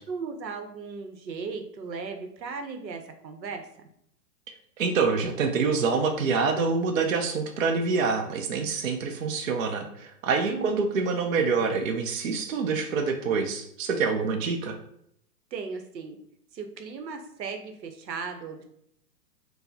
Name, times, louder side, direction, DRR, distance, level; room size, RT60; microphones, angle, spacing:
voice 1, 0.1-3.9 10.4-10.8 15.5-16.2 16.5-18.6, right 5 dB, 85° right, 6 dB, 0.8 m, -37 dB
voice 2, 4.8-14.8, right 4 dB, 55° right, 4 dB, 0.5 m, -26 dB
4.5 x 2.0 x 2.7 m, 0.73 s
hypercardioid pair, 160°, 50 cm